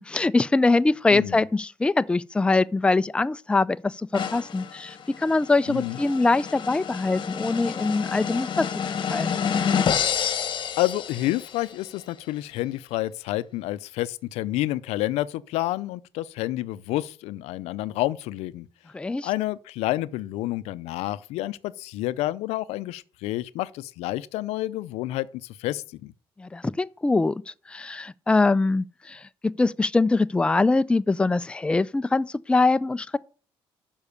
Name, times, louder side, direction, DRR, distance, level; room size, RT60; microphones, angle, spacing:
voice 1, 0.0-8.7 9.1-9.4 18.9-19.3 26.4-27.4 27.7-33.2, left 3 dB, 10° left, 0.3 m, -23 dB
voice 2, 1.1-1.4 5.7-6.0 10.8-18.7 19.2-26.1, left 16 dB, 90° left, 0.4 m, -29 dB
sound 1, 4.1-11.7, left 7 dB, 50° left, 1.1 m, -29 dB
6.9 x 5.4 x 6.6 m
cardioid pair, 90°, 10 cm